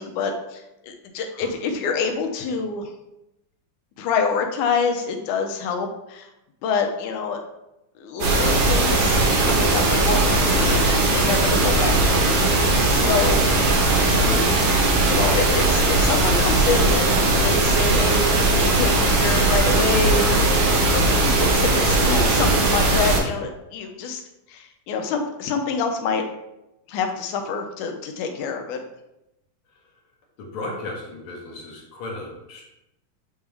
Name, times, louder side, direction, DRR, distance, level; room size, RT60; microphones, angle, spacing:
voice 1, 0.0-2.9 4.0-6.3 6.6-7.4 8.0-13.4 15.1-24.2 24.5-26.2 26.9-28.8, left 5 dB, 75° left, 4 dB, 2.1 m, -27 dB
sound 1, 8.2-23.2, right 2 dB, 70° right, 2.6 m, -19 dB
voice 2, 13.8-14.5 30.4-32.6, left 2 dB, 55° left, -2 dB, 1.6 m, -34 dB
8.9 x 3.4 x 3.4 m, 0.90 s
omnidirectional pair, 3.7 m